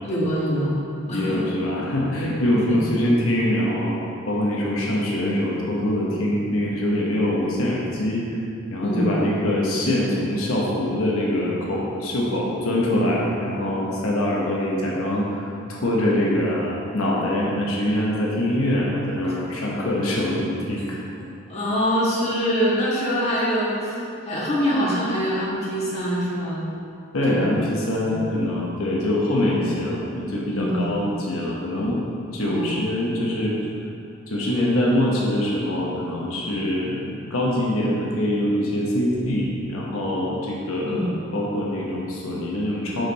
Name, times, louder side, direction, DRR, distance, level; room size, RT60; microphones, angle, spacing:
voice 1, 0.1-0.7 1.1-1.4 2.2-2.3 2.7-2.9 8.8-9.1 21.5-26.6 27.3-27.5 28.0-28.2 30.5-30.9 32.4-32.7 40.8-41.0, equal, 30° left, -7 dB, 1.5 m, -24 dB
voice 2, 1.1-8.2 8.7-21.0 27.1-32.0 32.3-33.6 34.3-43.1, left 1 dB, 80° left, -4 dB, 1.0 m, -24 dB
7.1 x 5.5 x 4.1 m, 2.6 s
head